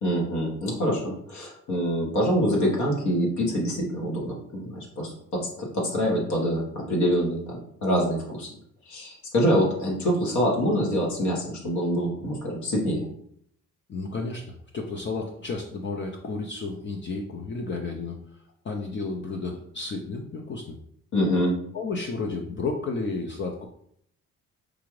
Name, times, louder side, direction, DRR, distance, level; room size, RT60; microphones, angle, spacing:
voice 1, 0.0-5.1 5.6-8.5 8.9-13.1 21.1-21.5, equal, 70° left, -2 dB, 1.4 m, -25 dB
voice 2, 13.9-18.2 18.6-20.7 21.7-23.6, left 3 dB, 40° left, 1 dB, 0.5 m, -32 dB
4.8 x 2.5 x 3.1 m, 0.68 s
cardioid pair, 90°, 30 cm